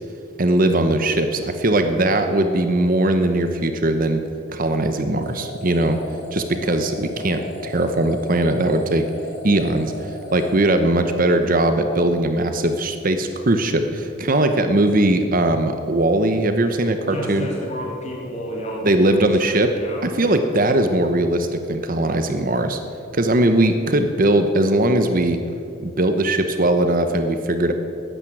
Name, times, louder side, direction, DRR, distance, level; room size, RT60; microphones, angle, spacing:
voice 1, 0.4-4.2 4.5-6.0 6.3-9.1 9.4-17.5 18.8-19.7 20.0-22.8 23.1-25.4 25.8-27.7, right 1 dB, 40° right, 8 dB, 0.9 m, -20 dB
sound 1, 5.2-11.3, left 1 dB, 65° left, 2.9 m, -37 dB
voice 2, 17.1-20.4, equal, 35° left, -2 dB, 3.6 m, -31 dB
13.5 x 10.5 x 9.0 m, 2.6 s
head